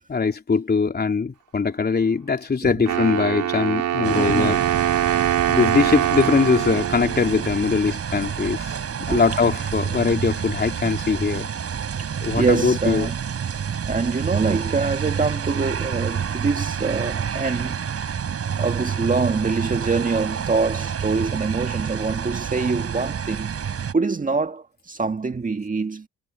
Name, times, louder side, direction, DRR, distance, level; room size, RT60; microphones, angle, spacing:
voice 1, 0.1-4.6 5.1-5.2 5.5-8.7 9.1-11.5 12.2-13.1, left 5 dB, 35° left, 3.5 m, -21 dB
Wind instrument woodwind instrument, 2.9-7.8, right 11 dB, 75° right, 5.2 m, -23 dB
sound 1, 4.0-23.9, right 7 dB, 50° right, 6.9 m, -28 dB
voice 2, 4.2-4.6 8.7-9.2 12.0-13.2 13.9-17.8 18.6-23.6 23.9-26.1, right 4 dB, 25° right, 2.0 m, -25 dB
cardioid pair, 90°, 30 cm